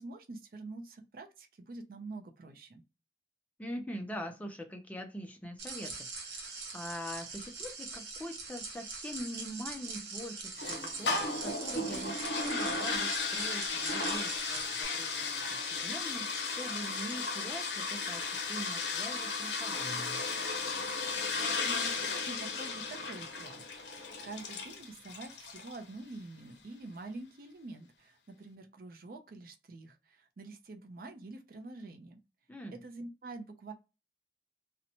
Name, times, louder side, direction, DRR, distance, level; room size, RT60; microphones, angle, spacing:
voice 1, 0.0-2.8 21.6-32.2 32.7-33.7, right 2 dB, 55° right, 0.4 m, -46 dB
voice 2, 3.6-20.2 32.5-32.8, equal, 10° left, 0.3 m, -43 dB
sound 1, 5.6-14.8, right 4 dB, 85° right, 0.8 m, -42 dB
sound 2, 10.6-25.8, left 4 dB, 80° left, 0.6 m, -35 dB
2.8 x 2.1 x 2.6 m
head